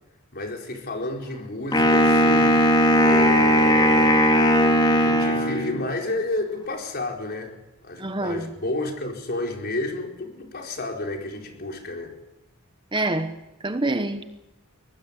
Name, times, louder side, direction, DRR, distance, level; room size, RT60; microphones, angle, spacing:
voice 1, 0.3-2.6 3.0-4.3 4.9-7.5 7.8-12.1, left 2 dB, 45° left, 4.6 m, -31 dB
Wind instrument woodwind instrument, 1.7-6.0, equal, 20° left, 3.7 m, -18 dB
voice 2, 8.0-8.5 12.9-13.3 13.6-14.2, right 2 dB, 20° right, 1.0 m, -26 dB
23.0 x 18.5 x 8.3 m
head